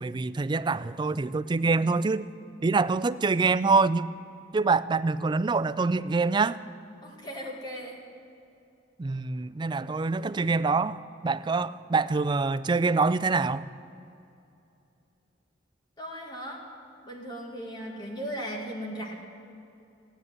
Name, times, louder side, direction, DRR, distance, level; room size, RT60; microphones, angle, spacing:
voice 1, 0.0-2.3 2.6-4.1 4.5-6.6 9.0-13.7, right 4 dB, 25° right, 14 dB, 0.3 m, -25 dB
voice 2, 7.0-8.0 16.0-16.6 17.0-19.2, equal, 25° left, 0 dB, 1.7 m, -37 dB
15.0 x 10.0 x 9.5 m, 2.7 s
head